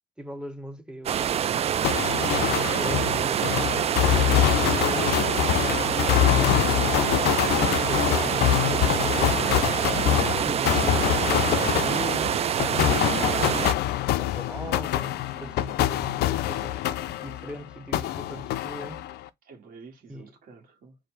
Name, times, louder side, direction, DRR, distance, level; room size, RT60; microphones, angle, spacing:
voice 1, 0.2-1.7 2.5-3.9 4.5-5.9 6.2-11.4 11.7-13.2 13.5-16.9 17.2-19.0 20.1-20.3, equal, 5° right, 0.7 m, -40 dB
sound 1, 1.1-13.7, right 9 dB, 40° right, 0.4 m, -26 dB
sound 2, 1.8-17.6 17.9-19.3, left 13 dB, 75° left, 0.5 m, -25 dB
voice 2, 15.3-15.8 19.4-21.0, right 4 dB, 55° right, 1.4 m, -49 dB
5.0 x 2.1 x 4.6 m
cardioid pair, 110°, 17 cm